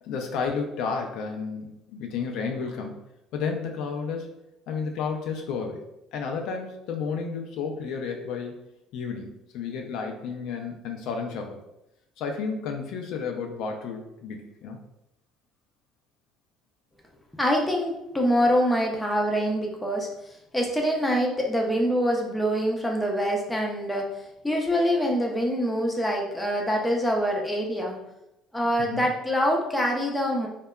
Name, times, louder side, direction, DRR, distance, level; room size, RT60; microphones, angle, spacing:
voice 1, 0.0-3.0 3.3-4.3 4.7-5.8 6.1-8.6 8.9-11.6 12.2-14.8 28.8-29.1, left 5 dB, 70° left, 3 dB, 0.3 m, -32 dB
voice 2, 17.4-20.1 20.5-24.1 24.4-28.0 28.5-30.5, equal, 5° left, 0 dB, 0.4 m, -25 dB
2.7 x 2.2 x 2.2 m, 0.87 s
cardioid pair, 115°, 0 cm